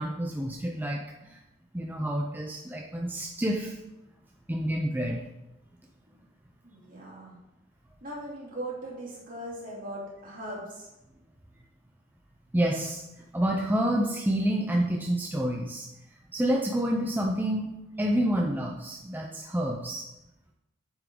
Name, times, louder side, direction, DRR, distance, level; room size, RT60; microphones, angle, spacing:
voice 1, 0.0-1.4 1.7-3.8 4.5-5.2 12.5-13.0 13.3-15.9 16.3-20.0, right 1 dB, 10° right, 0 dB, 0.6 m, -28 dB
voice 2, 6.6-7.4 8.0-10.9, right 1 dB, 45° right, -5 dB, 3.1 m, -39 dB
9.1 x 7.1 x 3.9 m, 0.93 s
head